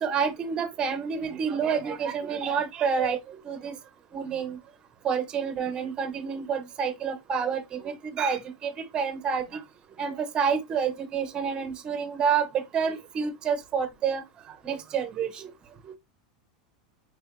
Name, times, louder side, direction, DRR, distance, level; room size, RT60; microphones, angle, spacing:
voice 1, 0.0-3.7 4.1-4.6 5.0-9.6 10.0-12.5 12.7-14.2 14.6-15.5, right 6 dB, 20° right, 0.6 m, -28 dB
4.3 x 2.4 x 2.9 m
supercardioid pair, 155°, 4 cm